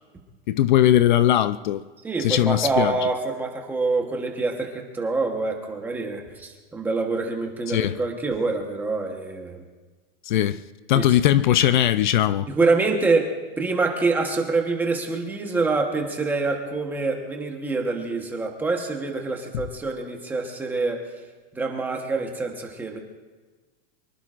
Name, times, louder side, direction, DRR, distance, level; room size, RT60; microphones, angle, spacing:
voice 1, 0.5-1.8 2.2-2.9 7.7-8.0 10.2-10.6 10.9-12.5, left 12 dB, 55° left, 0.5 m, -19 dB
voice 2, 2.0-9.6 10.9-11.1 12.5-21.0 21.5-23.0, right 3 dB, 5° right, 1.1 m, -26 dB
24.5 x 22.5 x 2.5 m
supercardioid pair, 175°, 29 cm